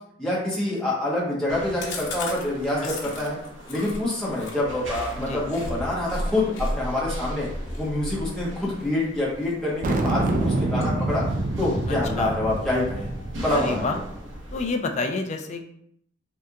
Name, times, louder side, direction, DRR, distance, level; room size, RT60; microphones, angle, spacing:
voice 1, 0.2-3.4 3.7-7.5 7.8-11.2 11.6-13.1 13.4-14.0, left 1 dB, 5° left, -8 dB, 1.2 m, -26 dB
sound 1, 1.5-14.6, equal, 80° right, 0.8 m, -36 dB
Chewing mastication, 1.8-5.7 6.0-6.2 6.5-9.5 9.9-10.2 10.5-11.4 11.7-11.8 12.1-12.2 12.5-13.1, left 4 dB, 90° left, 0.8 m, -39 dB
voice 2, 2.8-3.1 5.3-5.4 11.9-12.4 13.5-14.0 14.5-15.7, left 3 dB, 35° left, 5 dB, 0.4 m, -29 dB
sound 2, 9.8-14.5, right 2 dB, 45° right, 0.3 m, -27 dB
3.3 x 2.8 x 2.4 m, 0.70 s
head